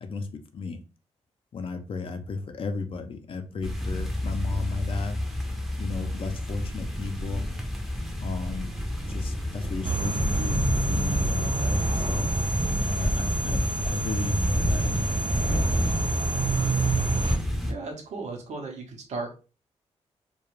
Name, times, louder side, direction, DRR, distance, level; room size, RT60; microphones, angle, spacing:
voice 1, 1.5-5.2 5.8-7.5 8.2-8.7 9.1-12.6 12.9-15.8, left 4 dB, 50° left, 0.5 m, -34 dB
sound 1, 3.6-17.7, left 1 dB, ahead, 0.6 m, -29 dB
sound 2, 9.8-17.4, right 3 dB, 50° right, 0.5 m, -28 dB
voice 2, 17.7-19.3, right 3 dB, 80° right, 0.7 m, -35 dB
2.4 x 2.2 x 3.0 m
cardioid pair, 95°, 12 cm